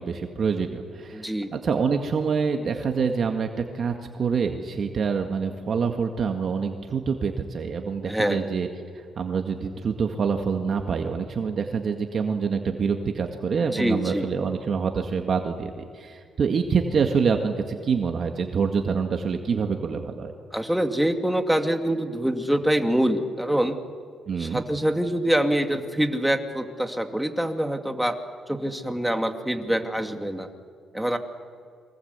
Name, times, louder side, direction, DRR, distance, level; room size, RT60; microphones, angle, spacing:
voice 1, 0.0-8.7 9.2-20.3 24.3-24.6, right 5 dB, 50° right, 4 dB, 1.9 m, -26 dB
voice 2, 1.1-1.5 8.1-8.5 13.7-14.3 20.5-23.8 24.4-28.2 28.5-30.5 30.9-31.2, right 1 dB, 5° right, 5 dB, 2.3 m, -25 dB
29.0 x 24.0 x 8.2 m, 2.1 s
cardioid pair, 90°, 0 cm